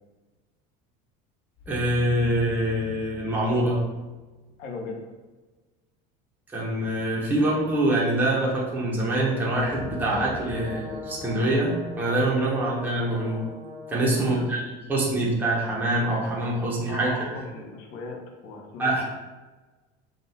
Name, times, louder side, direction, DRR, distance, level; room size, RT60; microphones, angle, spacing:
sound 1, 1.6-4.5 9.5-12.7, left 2 dB, 30° left, 0.4 m, -42 dB
voice 1, 1.7-3.8 6.5-13.5 13.9-17.4 18.8-19.0, right 1 dB, 10° right, -5 dB, 0.7 m, -25 dB
voice 2, 4.6-5.0 12.4-12.5 14.2-14.5 16.9-18.9, left 3 dB, 65° left, 1 dB, 0.9 m, -38 dB
Brass instrument, 9.2-14.4, left 3 dB, 55° right, 0.9 m, -40 dB
4.0 x 2.3 x 4.1 m, 1.2 s
cardioid pair, 165°, 19 cm